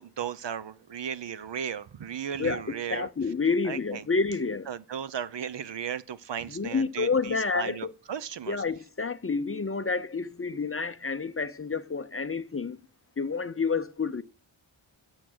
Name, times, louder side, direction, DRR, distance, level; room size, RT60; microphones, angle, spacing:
voice 1, 0.0-3.1 3.7-4.0 4.7-8.6, right 8 dB, 60° right, 0.7 m, -35 dB
voice 2, 2.4-4.7 6.5-7.9 8.5-12.8 13.2-14.2, left 4 dB, 30° left, 0.5 m, -29 dB
8.4 x 7.9 x 6.1 m
wide cardioid pair, 70°, 49 cm